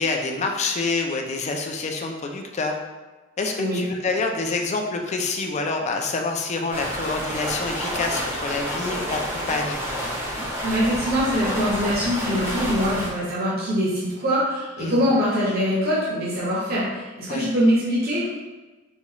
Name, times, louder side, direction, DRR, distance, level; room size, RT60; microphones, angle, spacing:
voice 1, 0.0-2.7 3.4-9.2 9.5-9.8 14.8-15.0 17.3-17.5, left 3 dB, 35° left, 3 dB, 0.4 m, -27 dB
sound 1, 6.7-13.1, equal, 10° right, 0.6 m, -29 dB
voice 2, 10.6-18.3, equal, 50° right, -7 dB, 0.8 m, -23 dB
4.1 x 2.3 x 2.9 m, 1.2 s
head